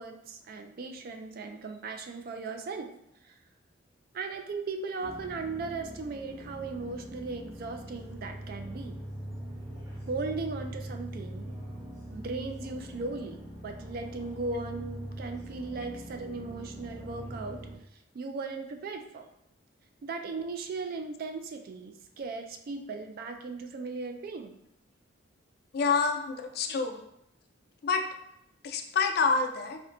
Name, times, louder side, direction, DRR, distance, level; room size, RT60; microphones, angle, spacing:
voice 1, 0.0-2.9 3.2-3.4 4.1-9.0 10.1-11.6 12.1-17.6 18.1-19.3 20.0-24.6, right 3 dB, 50° right, 5 dB, 0.3 m, -37 dB
sound 1, 5.0-17.7, equal, 15° right, 0.6 m, -42 dB
voice 2, 25.7-27.0 27.8-28.0 28.6-29.8, left 4 dB, 50° left, 5 dB, 0.3 m, -27 dB
4.1 x 2.1 x 2.5 m, 0.78 s
head